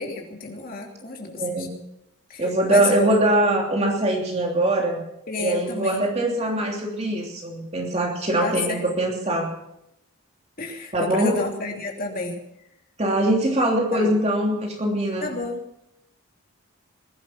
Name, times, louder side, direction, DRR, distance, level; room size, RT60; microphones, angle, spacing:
voice 1, 0.0-1.7 2.3-3.1 5.3-6.1 8.4-8.9 10.6-12.4 13.9-14.1 15.2-15.6, left 3 dB, 40° left, 1 dB, 3.1 m, -30 dB
voice 2, 1.4-1.7 2.4-5.0 5.4-9.5 10.9-11.4 13.0-15.3, right 1 dB, 30° right, 0 dB, 3.0 m, -22 dB
21.0 x 11.5 x 5.8 m, 0.80 s
head